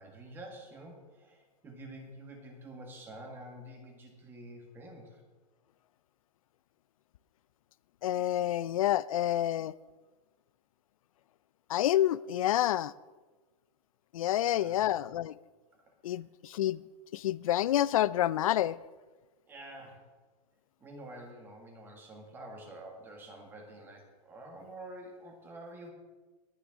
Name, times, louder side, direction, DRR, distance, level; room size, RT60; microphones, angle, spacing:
voice 1, 0.0-5.2 14.5-14.8 16.1-16.2 19.5-20.1 20.8-25.9, right 1 dB, 10° right, 1.6 m, -48 dB
voice 2, 8.0-9.7 11.7-12.9 14.1-15.4 16.0-16.8 17.1-18.8, left 12 dB, 55° left, 0.4 m, -28 dB
21.0 x 9.3 x 3.6 m
supercardioid pair, 175°, 20 cm